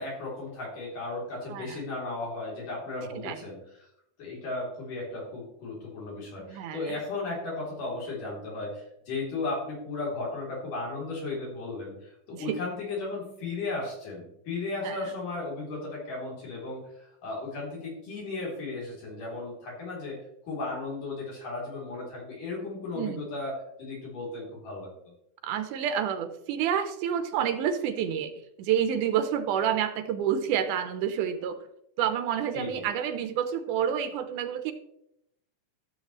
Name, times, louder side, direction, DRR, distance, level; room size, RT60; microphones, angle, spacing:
voice 1, 0.0-3.9 4.2-24.9 32.5-32.8, left 3 dB, 85° left, -4 dB, 5.0 m, -35 dB
voice 2, 1.5-1.8 3.1-3.4 6.4-7.0 12.3-12.6 14.8-15.0 22.9-23.2 25.4-28.3 28.6-31.6 32.0-34.7, right 9 dB, 85° right, 9 dB, 2.3 m, -29 dB
13.0 x 7.3 x 3.2 m, 0.78 s
omnidirectional pair, 3.6 m